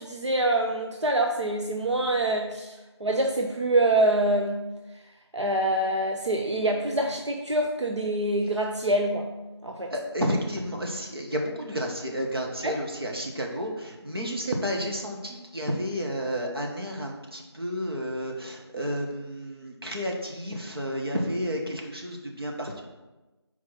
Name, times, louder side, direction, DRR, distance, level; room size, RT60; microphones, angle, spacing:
voice 1, 0.0-4.7 5.3-9.3 9.6-9.9 12.6-12.8, right 1 dB, 85° right, 2 dB, 0.7 m, -25 dB
voice 2, 9.9-22.8, equal, 60° right, 0 dB, 1.3 m, -31 dB
4.6 x 4.3 x 5.6 m, 1.1 s
figure-of-eight pair, 175°, 15 cm